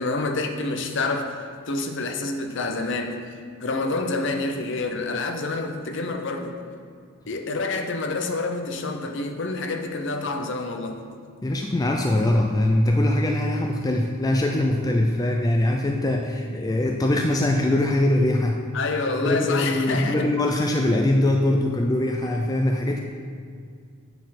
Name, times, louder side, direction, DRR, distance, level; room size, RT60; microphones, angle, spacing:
voice 1, 0.0-3.3 3.6-6.5 7.3-11.0 18.7-20.3, left 3 dB, 55° left, 5 dB, 0.7 m, -28 dB
voice 2, 11.4-18.6 19.2-23.0, left 1 dB, 15° left, 2 dB, 0.3 m, -22 dB
8.1 x 6.2 x 4.2 m, 2.1 s
head